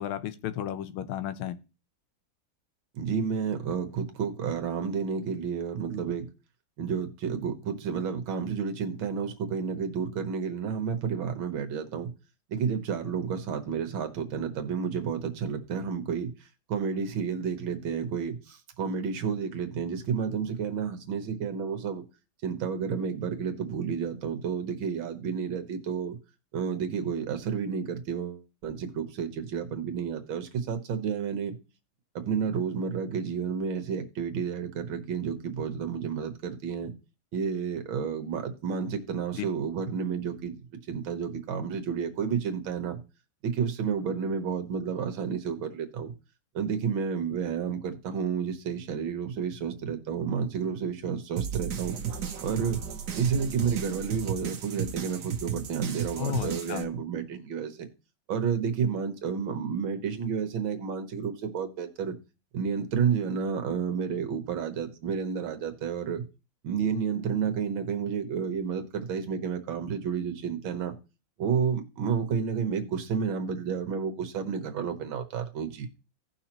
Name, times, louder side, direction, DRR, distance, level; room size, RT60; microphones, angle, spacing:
voice 1, 0.0-1.6 39.4-39.5 56.2-56.9, left 11 dB, 90° left, 1.6 m, -33 dB
voice 2, 2.9-6.3 6.8-12.1 12.5-16.3 16.7-22.0 22.4-26.2 26.5-31.6 32.2-36.9 37.3-40.6 40.9-43.0 43.4-46.1 46.6-52.0 52.4-52.8 53.2-57.9 58.3-62.1 62.5-66.2 66.6-70.9 71.4-75.9, right 6 dB, 75° right, 1.9 m, -31 dB
sound 1, 51.4-56.8, right 8 dB, 60° right, 1.4 m, -34 dB
16.5 x 5.6 x 3.0 m
omnidirectional pair, 2.2 m